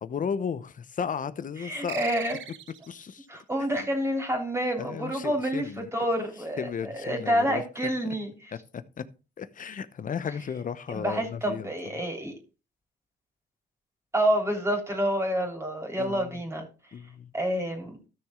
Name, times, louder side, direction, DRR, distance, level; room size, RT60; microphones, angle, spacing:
voice 1, 0.0-2.0 2.9-3.3 3.7-3.8 4.8-5.9 6.6-7.6 8.7-9.1 9.4-11.7 16.0-16.3 16.9-17.3, left 7 dB, 40° left, 0.9 m, -34 dB
voice 2, 1.6-2.4 3.3-8.5 10.9-12.4 14.1-16.9 17.3-18.0, equal, 15° right, 3.4 m, -28 dB
sound 1, 1.9-3.1, right 9 dB, 70° right, 0.9 m, -37 dB
13.5 x 6.5 x 3.7 m
cardioid pair, 90°, 20 cm